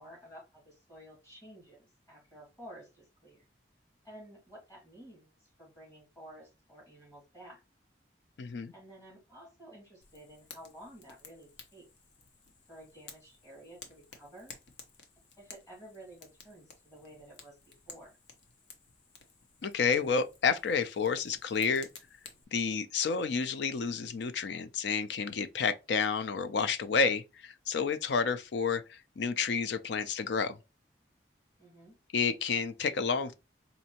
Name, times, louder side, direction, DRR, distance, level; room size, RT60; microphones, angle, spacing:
voice 1, 0.0-3.5 4.0-5.3 5.6-7.6 8.7-11.9 12.7-14.5 15.4-18.2 31.6-31.9, right 1 dB, 15° left, 2.4 m, -52 dB
voice 2, 8.4-8.7 19.6-21.9 22.5-30.6 32.1-33.3, left 5 dB, 70° left, 0.4 m, -30 dB
Fire, 10.0-22.4, left 5 dB, 85° left, 0.8 m, -55 dB
4.2 x 2.7 x 2.8 m
head